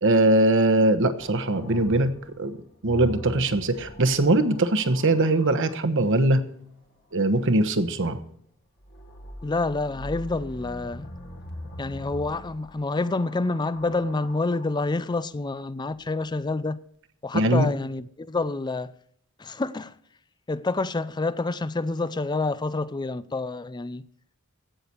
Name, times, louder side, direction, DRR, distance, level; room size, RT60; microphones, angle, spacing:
voice 1, 0.0-2.6 2.8-6.4 7.1-8.2 17.3-17.7, right 2 dB, 60° right, 1.1 m, -21 dB
sound 1, 1.2-5.8 8.8-14.9 15.9-16.5, equal, 50° left, 1.7 m, -41 dB
voice 2, 9.4-11.1 11.8-16.8 17.2-18.9 19.4-20.0 20.5-24.0, left 3 dB, 20° left, 0.4 m, -28 dB
16.5 x 6.9 x 4.5 m
head